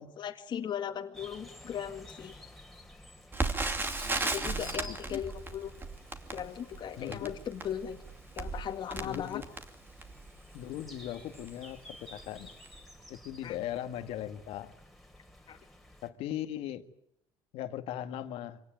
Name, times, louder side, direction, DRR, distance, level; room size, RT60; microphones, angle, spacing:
voice 1, 0.2-2.4 4.2-5.7 6.3-8.0 8.3-9.4 13.4-13.6 15.5-15.6, left 9 dB, 50° left, 2.0 m, -38 dB
sound 1, 1.1-16.1, left 1 dB, ahead, 3.7 m, -53 dB
Crackle, 3.3-10.3 10.9-11.0 11.3-11.5 12.2-12.4 12.6-12.7, right 3 dB, 20° right, 2.6 m, -36 dB
voice 2, 4.3-5.2 7.0-7.3 9.0-9.5 10.5-12.5 13.1-14.7 16.0-16.8 17.5-18.6, left 11 dB, 80° left, 1.8 m, -39 dB
25.0 x 18.0 x 9.3 m
cardioid pair, 105°, 10 cm